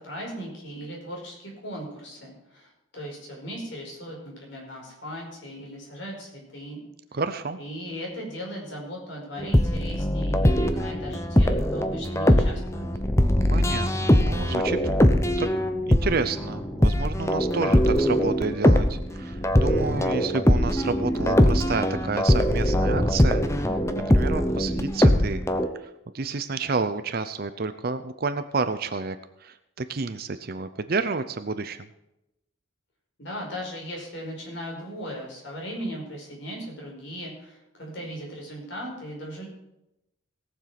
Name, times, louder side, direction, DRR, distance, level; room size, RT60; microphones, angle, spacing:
voice 1, 0.0-6.8 7.6-12.9 33.2-39.5, equal, 55° left, -1 dB, 5.2 m, -38 dB
voice 2, 7.1-7.6 13.5-15.5 15.9-25.4 25.8-25.9 26.1-31.9, right 4 dB, 45° right, 11 dB, 0.6 m, -30 dB
sound 1, 9.4-25.7, equal, 15° left, 0.8 m, -22 dB
18.0 x 7.3 x 5.9 m, 0.89 s
head